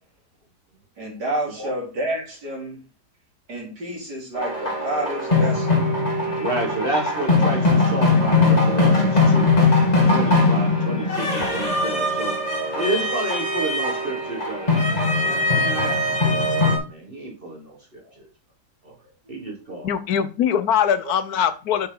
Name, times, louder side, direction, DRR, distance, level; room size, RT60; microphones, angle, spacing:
voice 1, 1.0-2.8 3.5-5.8 19.2-19.3 21.0-21.1, right 1 dB, 90° right, -3 dB, 4.3 m, -29 dB
sound 1, 4.3-16.8, left 3 dB, 25° left, 2.3 m, -20 dB
voice 2, 6.4-9.5 10.1-12.4 12.7-14.7 15.2-18.3 18.8-19.0 19.3-19.9, right 1 dB, 35° right, -1 dB, 1.8 m, -30 dB
voice 3, 19.8-21.9, left 8 dB, 70° left, 13 dB, 1.2 m, -22 dB
6.7 x 6.6 x 3.9 m, 0.33 s
omnidirectional pair, 1.8 m